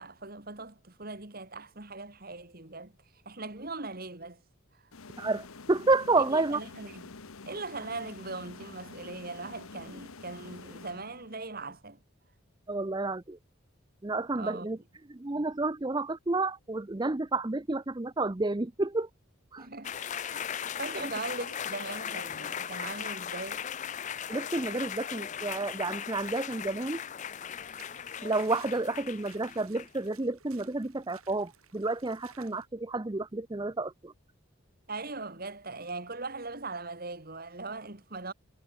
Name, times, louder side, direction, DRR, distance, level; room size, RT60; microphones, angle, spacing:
voice 1, 0.0-2.9 3.3-4.4 6.3-7.0 7.5-12.0 14.3-14.7 19.6-20.0 20.3-23.6 34.9-38.3, right 3 dB, 45° right, 2.3 m, -40 dB
sound 1, 4.9-11.5, left 4 dB, 75° left, 1.1 m, -48 dB
voice 2, 5.2-6.6 12.7-13.4 14.0-14.8 15.1-19.1 19.5-19.7 21.0-21.1 24.3-27.0 28.2-34.1, right 2 dB, 20° right, 0.6 m, -30 dB
sound 2, 19.8-30.1, left 8 dB, 35° left, 0.4 m, -38 dB
sound 3, 27.5-32.7, right 8 dB, 80° right, 3.9 m, -57 dB
head